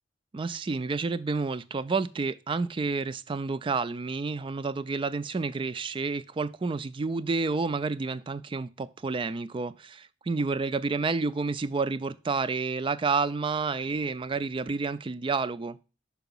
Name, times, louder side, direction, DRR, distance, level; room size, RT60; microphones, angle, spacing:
voice 1, 0.3-15.8, right 4 dB, 25° right, 0.3 m, -30 dB
5.8 x 4.8 x 5.3 m
head